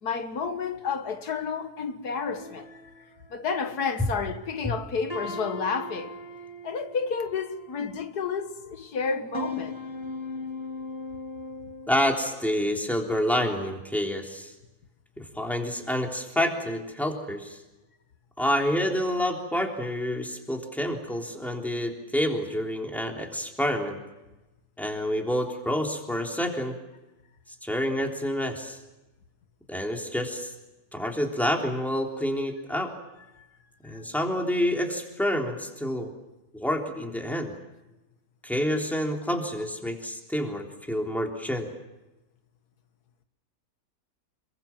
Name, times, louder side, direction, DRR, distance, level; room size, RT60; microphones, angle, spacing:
voice 1, 0.0-2.7 3.3-6.1 6.6-9.8 33.8-34.1, left 5 dB, 90° left, 2.0 m, -31 dB
sound 1, 2.3-4.2 4.6-4.8 5.1-8.4 8.9-12.2, left 1 dB, 15° right, 4.4 m, -39 dB
voice 2, 11.9-14.5 15.2-17.6 18.4-24.0 24.8-26.8 27.6-28.8 29.7-30.5 30.9-32.9 33.8-36.1 36.5-37.5 38.4-41.7, equal, ahead, 3.5 m, -28 dB
27.5 x 22.5 x 7.4 m
omnidirectional pair, 1.6 m